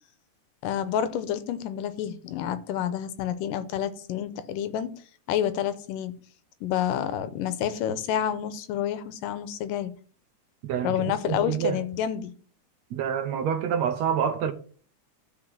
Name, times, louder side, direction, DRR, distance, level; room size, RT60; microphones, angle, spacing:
voice 1, 0.6-4.9 5.3-6.2 6.6-9.9 10.8-12.3, left 9 dB, 90° left, 2.5 m, -29 dB
voice 2, 11.3-11.8 12.9-14.5, right 8 dB, 70° right, 1.7 m, -27 dB
13.0 x 4.8 x 6.1 m
omnidirectional pair, 3.7 m